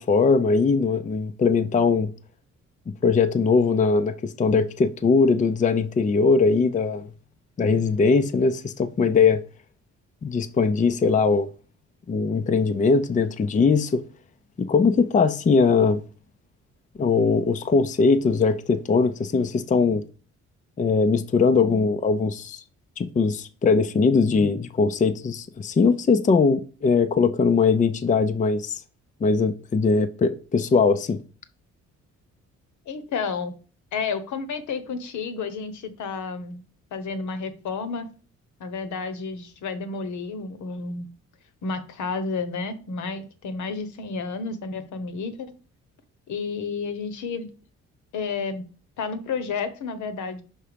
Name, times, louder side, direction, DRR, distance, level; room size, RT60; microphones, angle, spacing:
voice 1, 0.0-2.1 2.9-7.1 7.6-9.4 10.2-11.5 12.1-14.0 14.6-16.0 17.0-20.0 20.8-22.6 23.0-28.8 29.2-31.2, left 4 dB, 25° left, 0.5 m, -21 dB
voice 2, 32.9-33.5 33.9-36.6 36.9-38.1 38.6-41.1 41.6-45.5 46.3-47.5 48.1-48.6 49.0-50.4, left 4 dB, 75° left, 1.1 m, -31 dB
5.7 x 4.1 x 5.0 m
cardioid pair, 90°, 30 cm